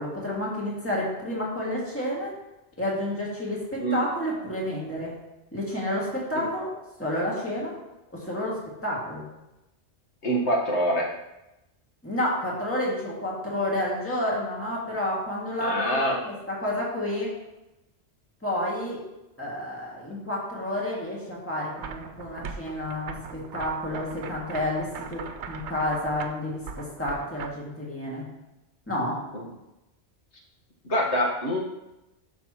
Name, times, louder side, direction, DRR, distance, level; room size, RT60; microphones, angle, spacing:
voice 1, 0.0-2.3 2.8-5.1 5.5-6.7 7.0-7.8 8.1-9.3 12.0-17.3 18.4-19.0 19.4-28.3 28.9-29.2, left 1 dB, 10° left, -5 dB, 2.2 m, -30 dB
voice 2, 10.2-11.1 15.6-16.2 29.3-29.5 30.8-31.6, equal, 85° left, -2 dB, 1.8 m, -25 dB
sound 1, 21.8-27.5, right 6 dB, 85° right, 1.0 m, -40 dB
11.5 x 6.2 x 3.0 m, 0.95 s
omnidirectional pair, 1.1 m